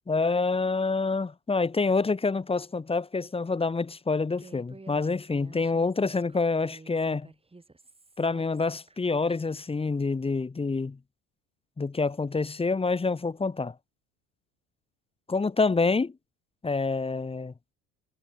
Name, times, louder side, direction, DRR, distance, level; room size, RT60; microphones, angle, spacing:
voice 1, 0.1-7.3 8.2-11.0 11.8-13.7 15.3-16.1 16.6-17.5, left 4 dB, 15° left, 1.0 m, -27 dB
Human voice, 4.4-9.6, right 3 dB, 15° right, 5.9 m, -51 dB
supercardioid pair, 85°, 39 cm